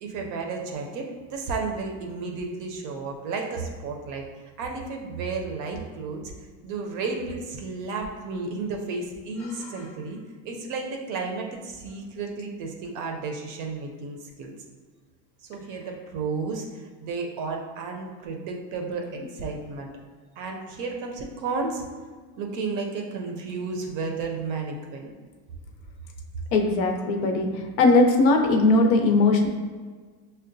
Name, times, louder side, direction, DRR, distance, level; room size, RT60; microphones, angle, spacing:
voice 1, 0.0-4.2 4.6-6.3 6.6-10.2 10.4-14.5 15.5-16.7 17.0-19.9 20.4-21.8 22.4-25.1, right 4 dB, 40° right, 2 dB, 0.4 m, -32 dB
voice 2, 26.5-29.5, left 2 dB, 90° left, 3 dB, 0.8 m, -19 dB
6.3 x 2.1 x 2.6 m, 1.5 s
cardioid pair, 155°, 50 cm